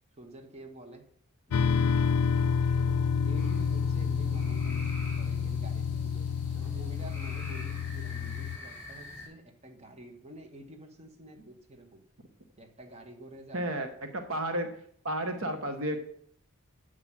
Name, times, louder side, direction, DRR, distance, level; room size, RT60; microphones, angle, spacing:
voice 1, 0.1-1.1 1.5-1.9 2.3-12.0 12.6-14.0, right 1 dB, 30° right, 4 dB, 1.1 m, -49 dB
sound 1, 1.5-8.6, left 6 dB, 85° left, 0.4 m, -29 dB
sound 2, 3.3-9.3, left 1 dB, 10° left, 4.8 m, -47 dB
voice 2, 13.5-13.9 14.1-14.8 15.0-16.0, right 1 dB, 60° right, 6 dB, 1.0 m, -32 dB
8.2 x 4.9 x 7.2 m, 0.64 s
head